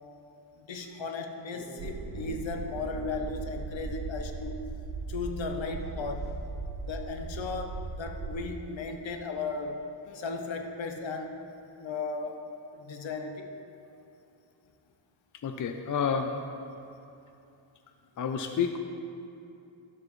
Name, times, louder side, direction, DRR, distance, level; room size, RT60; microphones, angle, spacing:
voice 1, 0.6-4.6 5.1-6.3 6.8-9.8 10.1-11.4 11.8-12.4 12.7-13.5, left 4 dB, 70° left, 4 dB, 0.9 m, -36 dB
Dog, 1.5-4.3 4.6-4.7 5.8-6.4 8.4-8.5, equal, 15° right, 1.8 m, -50 dB
sound 1, 1.8-8.4, right 3 dB, 75° right, 0.8 m, -38 dB
voice 2, 15.4-16.3 18.2-18.8, left 7 dB, 45° left, 5 dB, 0.5 m, -29 dB
12.0 x 7.5 x 3.1 m, 2.7 s
wide cardioid pair, 130°, 47 cm